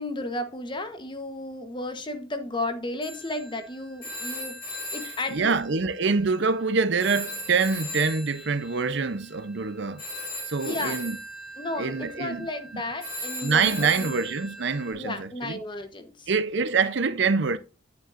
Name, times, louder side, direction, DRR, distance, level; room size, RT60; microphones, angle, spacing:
voice 1, 0.0-4.6 4.9-5.5 10.6-11.0 11.6-14.1 14.9-16.3, left 2 dB, 25° left, 1.1 m, -33 dB
Telephone, 3.0-6.6 7.0-14.9, left 1 dB, 50° left, 4.9 m, -38 dB
voice 2, 5.3-10.0 10.5-11.2 11.8-12.5 12.7-12.8 13.4-15.6 16.3-17.6, right 4 dB, 60° right, 0.7 m, -25 dB
9.4 x 9.1 x 2.6 m
head